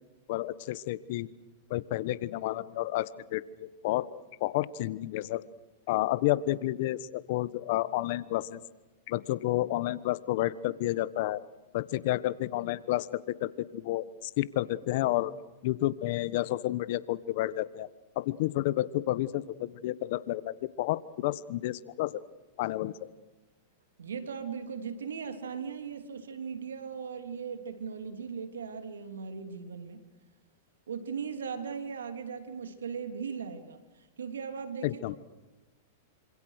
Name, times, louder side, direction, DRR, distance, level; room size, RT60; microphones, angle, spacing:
voice 1, 0.3-1.3 1.7-4.1 4.4-5.4 5.9-8.6 9.1-11.4 11.7-15.3 15.6-17.9 18.2-22.2 22.6-22.9 34.8-35.2, left 15 dB, 60° left, 17 dB, 1.2 m, -30 dB
voice 2, 24.0-30.0 30.9-33.8 34.2-35.2, right 6 dB, 85° right, 8 dB, 3.1 m, -38 dB
26.5 x 26.5 x 6.6 m, 1.1 s
hypercardioid pair, 115°, 0 cm